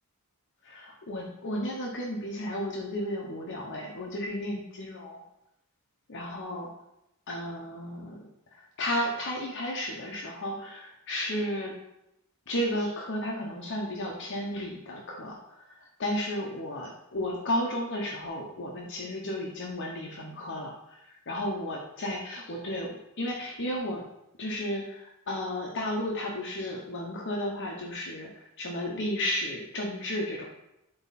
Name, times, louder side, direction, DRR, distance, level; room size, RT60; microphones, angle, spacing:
voice 1, 0.6-5.2 6.1-6.7 7.3-11.7 12.5-24.1 24.4-30.5, left 1 dB, 55° left, -1 dB, 1.0 m, -33 dB
10.5 x 4.1 x 4.2 m, 0.86 s
head